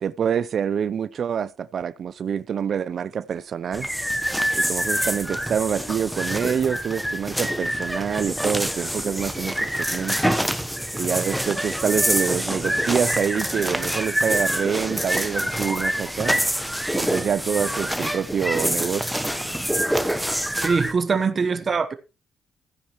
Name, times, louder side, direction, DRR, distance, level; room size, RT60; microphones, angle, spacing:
voice 1, 0.0-3.9 4.5-10.4 11.0-16.4 16.9-19.3 19.7-19.8, right 7 dB, 55° right, 0.5 m, -26 dB
sound 1, 3.7-20.9, equal, ahead, 1.0 m, -26 dB
voice 2, 20.6-21.9, right 5 dB, 40° right, 1.1 m, -22 dB
15.0 x 10.0 x 3.1 m
cardioid pair, 90°, 0 cm